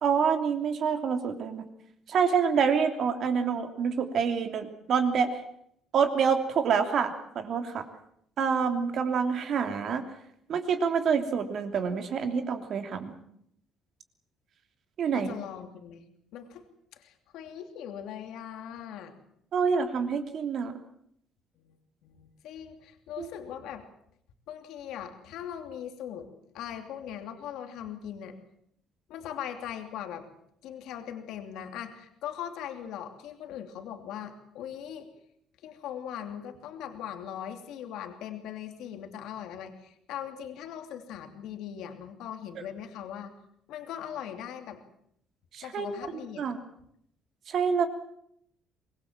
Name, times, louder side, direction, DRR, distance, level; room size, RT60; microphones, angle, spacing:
voice 1, 0.0-1.7 2.1-5.4 5.9-7.8 8.4-10.0 10.5-13.2 15.0-15.3 19.5-20.7 23.2-23.3 42.6-42.7 45.5-46.0 46.4-46.6 47.5-47.9, right 6 dB, 45° right, 6 dB, 3.0 m, -27 dB
voice 2, 15.1-16.1 16.3-16.6 16.9-19.1 21.6-21.7 22.0-23.8 24.5-26.3 26.5-28.4 29.1-30.2 30.6-35.1 35.6-43.3 43.7-44.8 45.6-46.5, left 9 dB, 75° left, 6 dB, 2.9 m, -40 dB
24.5 x 21.5 x 7.5 m, 0.72 s
cardioid pair, 160°, 0 cm